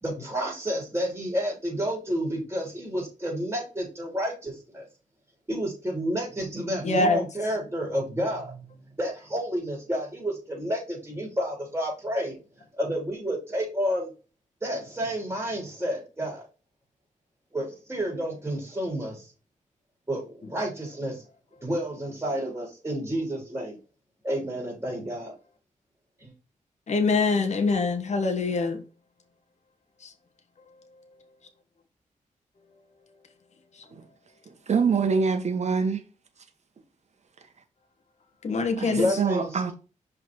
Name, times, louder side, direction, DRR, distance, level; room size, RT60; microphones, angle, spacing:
voice 1, 0.0-4.8 5.5-14.1 14.6-16.4 17.5-19.3 20.1-21.2 21.6-23.8 24.2-25.3 26.2-26.3 38.9-39.7, equal, 20° right, 3.8 m, -30 dB
voice 2, 6.8-7.2 26.9-28.8 38.4-39.1, left 3 dB, 60° left, 1.4 m, -24 dB
voice 3, 34.5-36.0 38.8-39.7, right 5 dB, 55° right, 1.3 m, -25 dB
5.7 x 4.2 x 4.8 m
cardioid pair, 95°, 14 cm